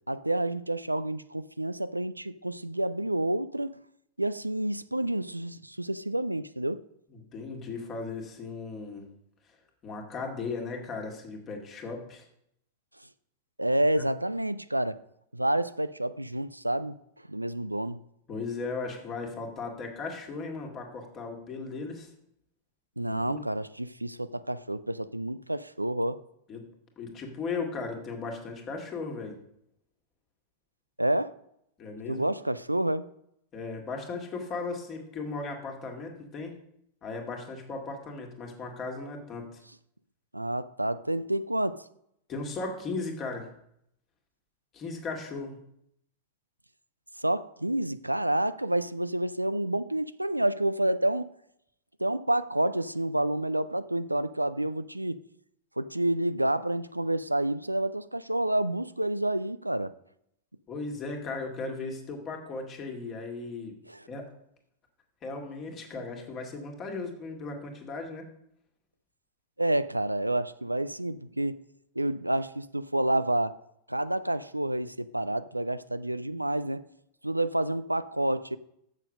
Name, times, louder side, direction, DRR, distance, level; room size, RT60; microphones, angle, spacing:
voice 1, 0.1-3.7 4.2-6.8 13.6-15.0 15.3-16.9 17.3-18.0 23.0-26.2 31.0-31.3 32.1-33.1 40.3-41.8 47.2-51.3 52.0-55.2 55.8-59.9 63.9-64.1 69.6-71.6 72.0-73.6 73.9-76.8 77.2-78.6, right 1 dB, 85° right, 0.3 m, -29 dB
voice 2, 7.1-9.1 9.8-12.3 13.9-14.0 18.3-22.1 23.0-23.4 26.5-26.6 27.0-29.3 31.8-32.2 33.5-36.6 37.0-39.6 42.3-43.5 44.7-45.6 60.7-63.7 64.1-64.3 65.2-68.3, left 3 dB, 30° left, 1.9 m, -37 dB
7.3 x 6.4 x 6.3 m
figure-of-eight pair, 90°, 0 cm